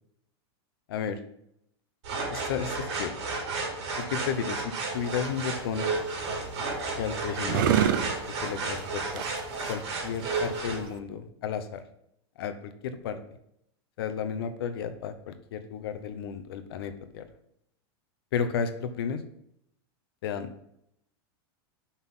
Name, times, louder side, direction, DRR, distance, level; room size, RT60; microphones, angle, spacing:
voice 1, 0.9-1.2 2.3-3.2 4.0-5.9 7.0-7.8 8.4-9.2 9.7-11.8 12.4-13.2 14.0-17.3 18.3-19.2 20.2-20.5, left 7 dB, 60° left, 9 dB, 0.8 m, -33 dB
sound 1, 2.0-10.8, right 3 dB, 85° right, 3.2 m, -33 dB
sound 2, 4.9-11.0, right 9 dB, 50° right, 0.6 m, -31 dB
5.9 x 5.7 x 5.7 m, 0.75 s
supercardioid pair, 180°, 14 cm